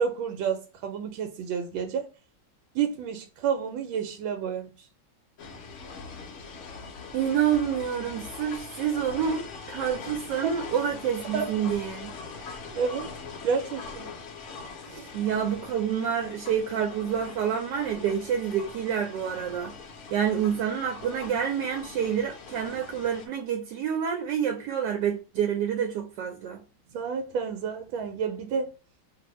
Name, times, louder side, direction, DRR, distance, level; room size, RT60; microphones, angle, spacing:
voice 1, 0.0-2.1 2.7-4.9 10.4-10.5 11.3-11.5 12.7-13.1 13.4-14.1 14.9-15.1 26.9-28.7, right 6 dB, 90° right, 1.3 m, -30 dB
sound 1, 5.4-23.3, left 4 dB, 85° left, 0.6 m, -42 dB
voice 2, 7.1-12.1 15.1-19.7 20.1-26.6, right 8 dB, 70° right, 1.1 m, -28 dB
2.7 x 2.6 x 2.9 m
omnidirectional pair, 2.1 m